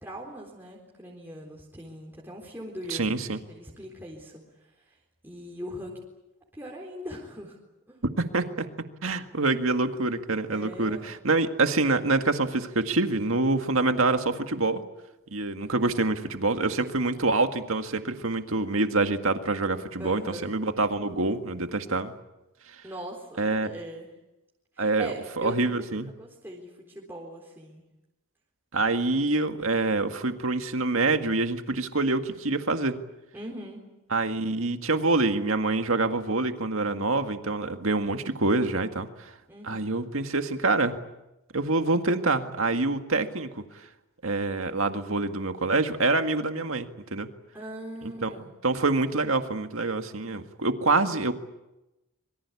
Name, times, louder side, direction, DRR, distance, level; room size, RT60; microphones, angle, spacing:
voice 1, 0.0-3.1 3.5-4.4 4.8-5.0 5.2-6.0 6.5-7.6 7.9-8.0 10.5-11.1 20.0-20.5 22.8-24.1 24.8-27.8 33.3-33.8 39.5-39.9 47.5-48.6, equal, 10° right, -3 dB, 3.9 m, -41 dB
voice 2, 2.9-3.4 8.0-8.7 9.0-14.8 15.3-22.1 23.4-23.7 24.8-26.1 28.7-33.0 34.1-39.3 39.6-41.0 41.5-43.6 44.2-47.3 48.0-48.3 48.6-51.3, right 3 dB, 70° right, 6 dB, 1.9 m, -26 dB
26.5 x 23.5 x 8.5 m, 0.96 s
head